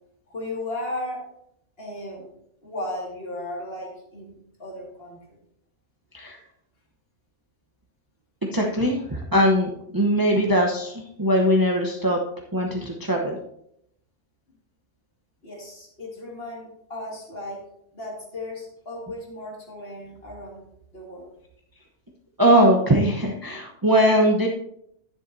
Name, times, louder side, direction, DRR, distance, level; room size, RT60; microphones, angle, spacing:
voice 1, 0.3-1.2 1.8-2.3 2.6-5.2 15.4-17.7 17.9-20.7 20.9-21.3, left 1 dB, 55° left, -2 dB, 2.6 m, -35 dB
voice 2, 8.5-12.2 12.5-13.4 22.4-24.5, equal, 20° right, -1 dB, 0.9 m, -21 dB
11.0 x 9.9 x 2.7 m, 0.75 s
omnidirectional pair, 1.2 m